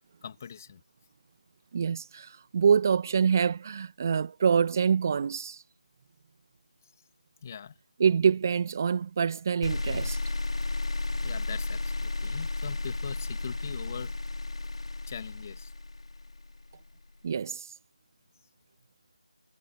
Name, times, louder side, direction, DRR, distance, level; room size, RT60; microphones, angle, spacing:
voice 1, 0.2-0.8 7.4-7.7 11.2-14.2 15.1-15.7, left 7 dB, 25° left, 2.6 m, -41 dB
voice 2, 1.7-5.6 8.0-10.2 17.2-17.7, right 6 dB, 25° right, 2.0 m, -25 dB
sound 1, 9.6-16.8, left 3 dB, 55° left, 5.2 m, -33 dB
figure-of-eight pair, 165°, 4 cm